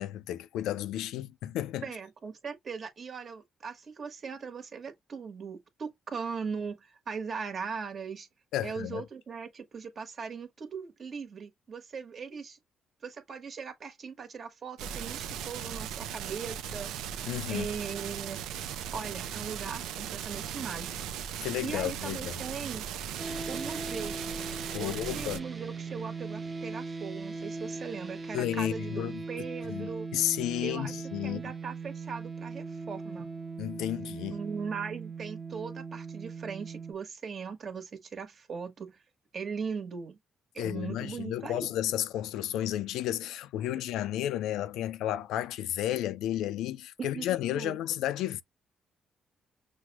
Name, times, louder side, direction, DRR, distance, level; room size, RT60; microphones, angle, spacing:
voice 1, 0.0-1.9 8.5-9.0 17.3-17.7 21.4-22.4 24.7-25.4 28.3-29.2 29.7-31.5 33.6-34.4 40.6-48.4, left 12 dB, 90° left, 0.4 m, -32 dB
voice 2, 1.8-8.3 8.6-12.6 13.0-16.9 17.5-18.4 18.9-21.0 21.6-22.8 23.5-24.2 24.8-30.1 30.6-30.9 31.2-33.3 34.3-39.0 39.3-40.2 40.5-41.7 47.0-47.3 47.5-47.8, right 5 dB, 45° right, 1.3 m, -39 dB
sound 1, 14.8-25.4, right 9 dB, 90° right, 0.5 m, -38 dB
sound 2, 23.2-36.9, right 4 dB, 30° right, 1.1 m, -39 dB
6.2 x 2.2 x 2.9 m
cardioid pair, 90°, 0 cm